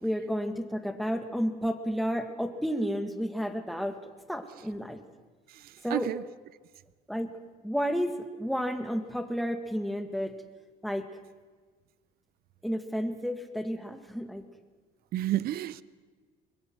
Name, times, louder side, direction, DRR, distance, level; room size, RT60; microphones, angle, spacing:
voice 1, 0.0-4.0 4.3-5.0 5.8-6.1 7.1-7.4 7.6-10.4 10.8-11.1 12.6-14.4, equal, ahead, 1.9 m, -31 dB
voice 2, 5.9-6.2 15.1-15.8, right 13 dB, 65° right, 0.6 m, -29 dB
23.5 x 20.5 x 6.3 m
cardioid pair, 110°, 17 cm